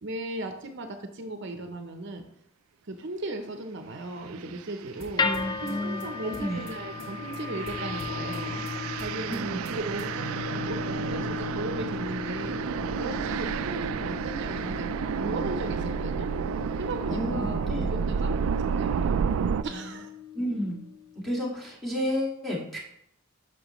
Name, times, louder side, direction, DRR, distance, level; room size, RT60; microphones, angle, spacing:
voice 1, 0.0-2.2 2.8-5.3 5.6-8.6 9.0-10.8 11.1-12.6 12.9-16.3 16.8-19.3 19.6-20.1, right 2 dB, 60° right, 6 dB, 0.7 m, -36 dB
sound 1, 4.4-4.6 5.2-19.6, right 7 dB, 90° right, 0.3 m, -31 dB
sound 2, 5.0-10.3, left 1 dB, 75° left, 1.5 m, -48 dB
sound 3, 5.2-21.4, left 6 dB, 20° left, 0.4 m, -37 dB
voice 2, 5.2-6.6 9.3-9.6 17.1-17.9 20.3-20.8 21.2-22.8, equal, ahead, -6 dB, 1.9 m, -31 dB
8.8 x 6.1 x 3.0 m, 0.76 s
head